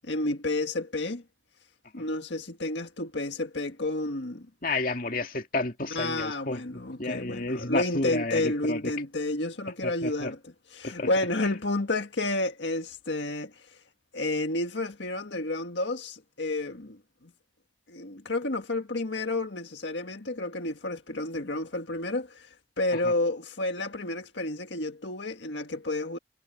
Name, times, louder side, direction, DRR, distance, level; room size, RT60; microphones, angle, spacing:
voice 1, 0.0-1.2 1.9-4.5 5.9-13.8 14.1-17.0 17.9-22.5 22.8-26.2, left 2 dB, 85° left, 1.7 m, -30 dB
voice 2, 4.6-8.8 9.8-10.3 10.8-11.1 23.0-23.1, left 2 dB, 50° left, 2.5 m, -31 dB
head